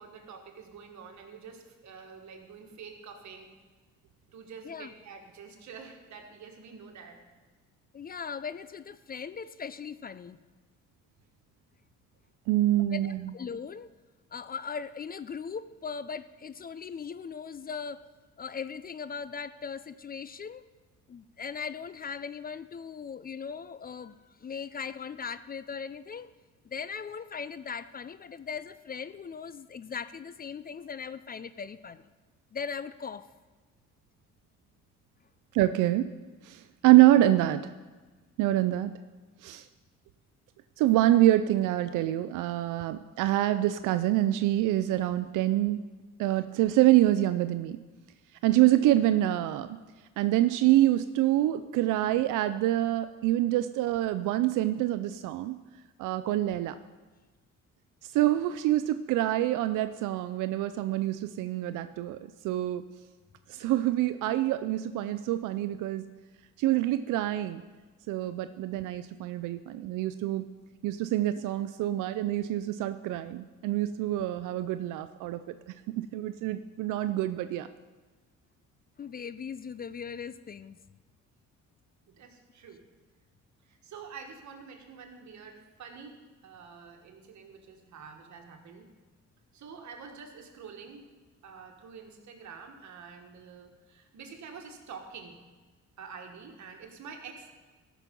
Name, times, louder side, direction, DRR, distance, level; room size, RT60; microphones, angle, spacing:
voice 1, 0.0-3.5 4.3-7.2 82.1-82.8 83.6-86.2 86.4-88.9 89.5-91.1 91.4-95.4 96.0-97.5, right 5 dB, 70° right, 4 dB, 1.7 m, -47 dB
voice 2, 7.9-10.4 12.9-13.9 14.3-18.0 18.4-20.6 21.1-26.3 26.6-32.1 32.5-33.3 79.0-80.8, left 6 dB, 30° left, 14 dB, 0.4 m, -39 dB
voice 3, 12.5-13.2 35.5-36.1 36.4-37.7 38.4-38.9 39.4-39.7 40.8-45.8 46.2-47.8 48.4-49.8 50.2-55.6 56.0-56.8 58.1-62.2 62.4-62.8 63.5-66.0 66.6-67.6 68.1-70.4 70.8-75.5 76.0-77.7, right 14 dB, 90° right, 11 dB, 0.5 m, -26 dB
14.0 x 6.1 x 5.3 m, 1.3 s
cardioid pair, 90°, 30 cm